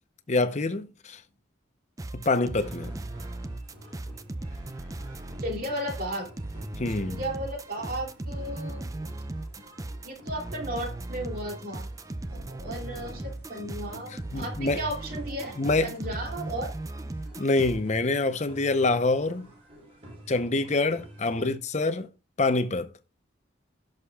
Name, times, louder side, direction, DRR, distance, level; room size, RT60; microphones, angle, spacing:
voice 1, 0.3-1.2 2.1-3.0 6.7-7.2 14.3-14.8 15.6-16.0 17.4-19.5 20.3-22.1 22.4-22.9, left 3 dB, 35° left, 0.7 m, -26 dB
sound 1, 2.0-17.8, right 2 dB, 20° right, 0.5 m, -37 dB
sound 2, 2.6-21.5, right 1 dB, 35° right, 6.0 m, -49 dB
voice 2, 5.4-6.3 6.9-8.9 10.0-11.9 12.3-16.7 21.4-21.5, right 1 dB, 50° right, 2.9 m, -35 dB
16.5 x 6.6 x 2.3 m
head